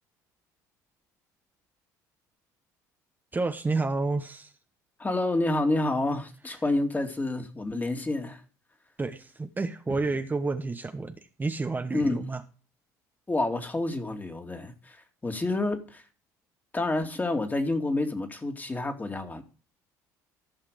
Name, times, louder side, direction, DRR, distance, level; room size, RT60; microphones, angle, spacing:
voice 1, 3.3-4.5 9.0-12.4, right 3 dB, 20° right, 1.1 m, -30 dB
voice 2, 5.0-8.4 9.9-10.0 11.9-12.2 13.3-16.0 16.7-19.4, left 2 dB, 20° left, 2.5 m, -29 dB
14.5 x 5.7 x 5.0 m
hypercardioid pair, 65°, 9 cm